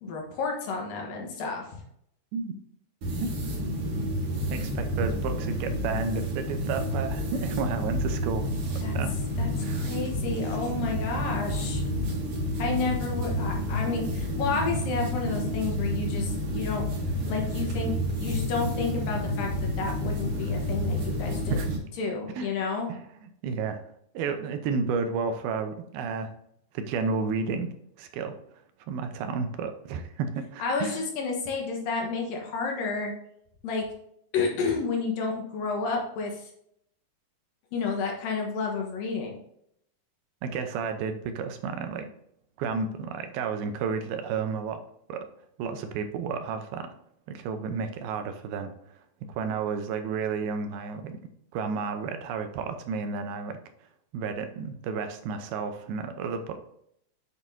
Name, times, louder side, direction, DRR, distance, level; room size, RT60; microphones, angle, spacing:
voice 1, 0.0-1.7 8.8-8.9 9.4-11.8 12.6-16.9 17.2-21.6 22.0-22.9 30.6-33.1 33.6-33.9 34.3-36.5 37.7-39.4, left 4 dB, 70° left, 1 dB, 2.8 m, -31 dB
sound 1, 3.0-21.8, equal, 55° right, 3.0 m, -30 dB
voice 2, 4.5-8.5 8.9-9.1 9.6-9.8 21.5-21.7 22.4-22.5 22.9-23.8 24.1-26.3 26.7-27.7 28.0-28.4 28.9-31.0 40.4-42.1 42.6-44.8 45.1-45.3 45.6-46.9 47.3-48.7 49.3-51.2 51.5-53.6 54.1-56.6, right 5 dB, 80° right, 7 dB, 2.6 m, -31 dB
8.4 x 7.3 x 2.7 m, 0.72 s
omnidirectional pair, 4.5 m